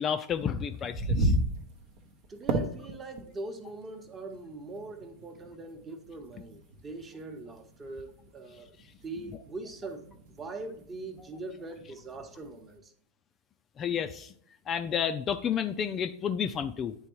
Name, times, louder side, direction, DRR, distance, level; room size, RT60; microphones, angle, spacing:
voice 1, 0.0-1.3 13.8-14.3 14.7-17.0, left 8 dB, 30° left, 0.3 m, -31 dB
sound 1, 0.7-12.8, right 1 dB, 55° right, 0.7 m, -36 dB
voice 2, 2.3-8.8 9.0-10.1 10.4-12.9, right 2 dB, 25° right, 0.9 m, -42 dB
9.6 x 3.4 x 3.0 m
figure-of-eight pair, 95°, 0 cm